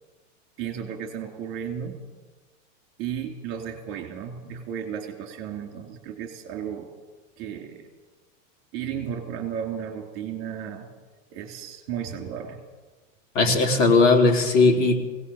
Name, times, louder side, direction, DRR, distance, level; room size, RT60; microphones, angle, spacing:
voice 1, 0.6-2.0 3.0-6.9 7.4-7.9 8.7-10.9 11.3-12.6, right 8 dB, 30° right, 4 dB, 3.1 m, -34 dB
voice 2, 13.4-15.0, left 3 dB, 70° left, 3 dB, 3.8 m, -18 dB
21.5 x 18.0 x 7.1 m, 1.3 s
supercardioid pair, 175°, 39 cm